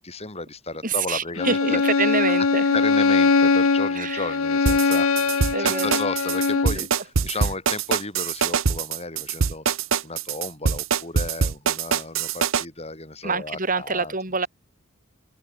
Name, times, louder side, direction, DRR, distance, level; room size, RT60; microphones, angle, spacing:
voice 1, 0.0-1.8 2.3-2.5 2.7-5.2 5.4-9.7 10.0-14.1, left 3 dB, 30° left, 7.5 m, -33 dB
voice 2, 0.8-2.8 4.0-4.3 5.5-6.0 6.8-6.9 13.2-14.5, right 4 dB, 40° right, 5.4 m, -26 dB
Bowed string instrument, 1.4-6.8, left 4 dB, 90° left, 0.9 m, -21 dB
sound 1, 4.7-12.6, right 6 dB, 70° right, 0.8 m, -23 dB
open air
head